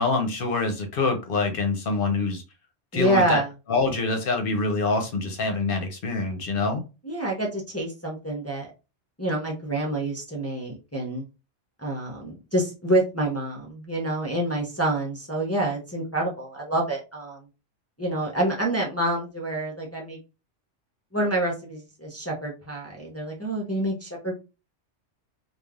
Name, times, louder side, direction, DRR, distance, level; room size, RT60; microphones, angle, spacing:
voice 1, 0.0-2.4 2.9-3.4 3.7-6.8, left 3 dB, 55° left, 0.7 m, -25 dB
voice 2, 2.9-3.5 7.0-8.7 9.2-11.2 11.8-17.4 18.0-20.2 21.1-24.4, right 1 dB, 25° left, 0.3 m, -27 dB
3.2 x 2.2 x 2.3 m
omnidirectional pair, 1.3 m